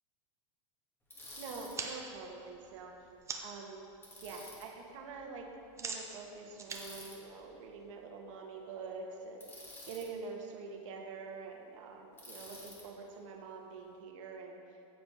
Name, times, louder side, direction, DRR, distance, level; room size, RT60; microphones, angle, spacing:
Bicycle, 1.1-1.8 4.0-4.7 6.7-7.2 9.4-10.1 12.2-12.9, left 1 dB, 15° left, 2.0 m, -50 dB
voice 1, 1.4-2.9 3.4-3.9 4.2-5.5 5.8-9.5 9.9-14.6, right 4 dB, 75° right, 1 dB, 1.6 m, -46 dB
sound 1, 1.6-3.7 4.1-4.5 4.8-8.0, right 4 dB, 15° right, 0.8 m, -44 dB
15.0 x 5.1 x 5.0 m, 2.6 s
supercardioid pair, 130°, 17 cm